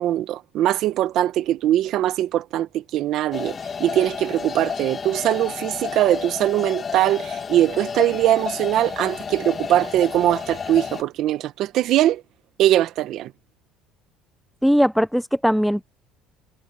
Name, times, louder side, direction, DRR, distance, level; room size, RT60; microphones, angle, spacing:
voice 1, 0.0-12.2 12.6-13.3, right 13 dB, 55° right, 1.2 m, -21 dB
sound 1, 3.3-11.0, left 6 dB, 30° left, 1.9 m, -31 dB
voice 2, 14.6-15.8, equal, ahead, 0.5 m, -19 dB
cardioid pair, 130°, 0 cm